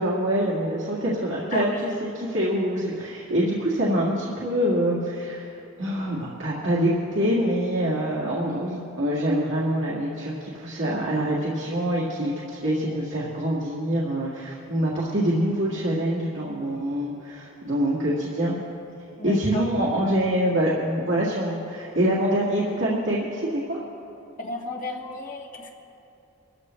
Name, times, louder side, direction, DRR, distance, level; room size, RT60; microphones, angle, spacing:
voice 1, 0.0-5.5 5.8-18.6 19.2-23.8, equal, 65° right, -6 dB, 1.9 m, -25 dB
voice 2, 1.5-1.9 19.2-19.6 24.4-25.7, left 2 dB, 40° left, -1 dB, 1.7 m, -33 dB
24.0 x 13.5 x 3.2 m, 2.9 s
head